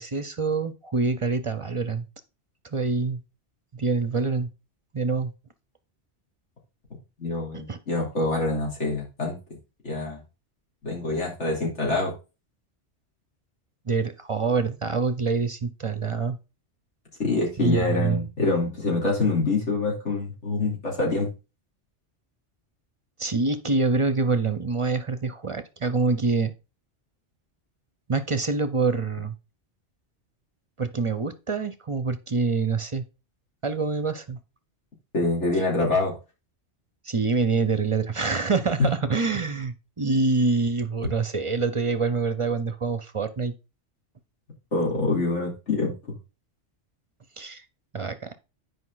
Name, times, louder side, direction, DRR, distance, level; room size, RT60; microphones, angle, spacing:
voice 1, 0.0-2.1 2.7-3.2 3.7-4.5 4.9-5.3 7.7-7.8 13.9-16.4 17.6-18.2 23.2-26.5 28.1-29.3 30.8-33.1 33.6-34.4 37.0-43.5 47.4-47.6 47.9-48.4, right 4 dB, 35° right, 12 dB, 0.6 m, -26 dB
voice 2, 7.2-9.4 9.8-10.2 10.8-12.1 17.2-21.3 35.1-36.1 44.7-45.9, left 3 dB, 85° left, -2 dB, 3.7 m, -25 dB
9.9 x 5.2 x 3.9 m, 0.29 s
omnidirectional pair, 1.2 m